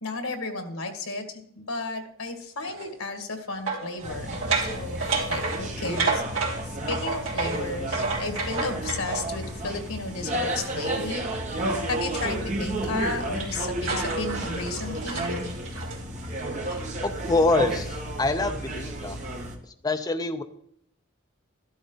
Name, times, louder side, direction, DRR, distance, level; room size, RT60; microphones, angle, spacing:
voice 1, 0.0-11.3 11.6-15.3, left 3 dB, 80° left, 6 dB, 1.9 m, -34 dB
sound 1, 2.7-2.9 3.7-9.6 10.9-12.4 12.8-17.1, right 4 dB, 70° right, 3.4 m, -31 dB
sound 2, 4.0-19.6, right 1 dB, 35° right, 1.8 m, -32 dB
voice 2, 17.0-19.2 19.8-20.4, left 2 dB, 20° left, 7 dB, 0.5 m, -25 dB
13.5 x 12.0 x 4.0 m, 0.70 s
head